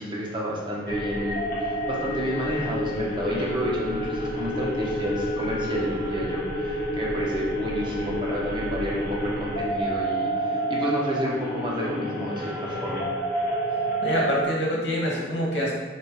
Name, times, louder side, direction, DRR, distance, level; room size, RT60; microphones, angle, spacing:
voice 1, 0.0-1.4 1.9-13.1, equal, 25° right, -4 dB, 1.2 m, -30 dB
sound 1, 0.9-14.4, equal, 55° left, 1.2 m, -29 dB
voice 2, 14.0-15.7, equal, 85° left, -3 dB, 1.7 m, -25 dB
7.2 x 3.0 x 4.9 m, 1.3 s
head